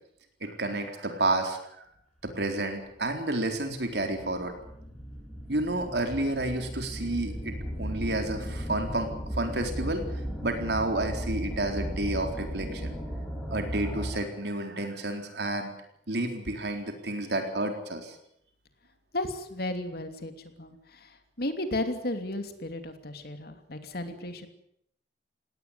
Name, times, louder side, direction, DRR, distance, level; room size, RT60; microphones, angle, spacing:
voice 1, 0.4-1.6 2.2-4.5 5.5-9.1 9.4-10.0 10.4-12.9 13.5-15.7 16.1-18.1, right 2 dB, 70° right, 5 dB, 4.1 m, -30 dB
sound 1, 3.0-3.1 3.8-14.4, equal, 5° left, 5.7 m, -36 dB
voice 2, 19.1-24.5, left 1 dB, 60° left, 7 dB, 2.9 m, -34 dB
19.0 x 18.5 x 9.6 m, 0.73 s
head